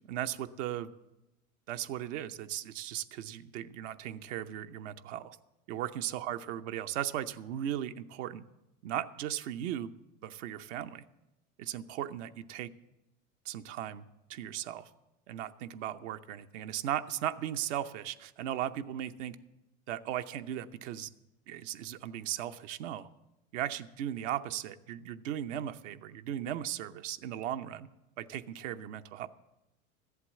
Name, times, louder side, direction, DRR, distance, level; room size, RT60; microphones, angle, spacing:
voice 1, 0.1-0.9 1.7-5.4 5.7-8.4 8.8-9.9 10.2-11.0 11.6-12.7 13.5-14.0 14.3-14.9 15.3-19.4 19.9-21.1 21.5-23.1 23.5-27.9 28.2-29.3, right 11 dB, 65° right, 9 dB, 0.8 m, -37 dB
14.0 x 8.2 x 7.4 m, 0.94 s
hypercardioid pair, 95°, 40 cm